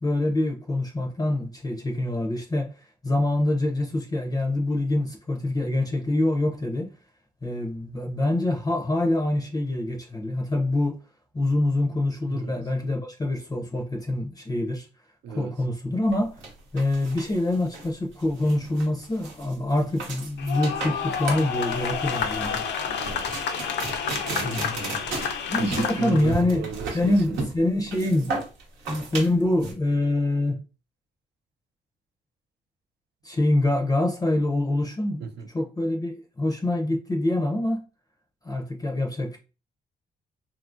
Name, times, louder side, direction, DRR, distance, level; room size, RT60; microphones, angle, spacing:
voice 1, 0.0-6.9 7.4-11.0 11.3-14.9 15.3-16.4 16.7-22.6 24.4-24.8 25.5-28.3 28.9-30.6 33.2-37.8 38.4-39.4, left 1 dB, 20° left, 0.5 m, -25 dB
voice 2, 12.3-12.6 15.2-15.5 23.0-23.3 24.8-25.3 25.6-27.4 35.2-35.5, right 6 dB, 65° right, 0.5 m, -35 dB
sound 1, 16.1-29.7, right 3 dB, 90° right, 0.8 m, -35 dB
sound 2, 20.4-26.3, left 6 dB, 70° left, 0.5 m, -30 dB
2.8 x 2.5 x 2.4 m
supercardioid pair, 60°, 19 cm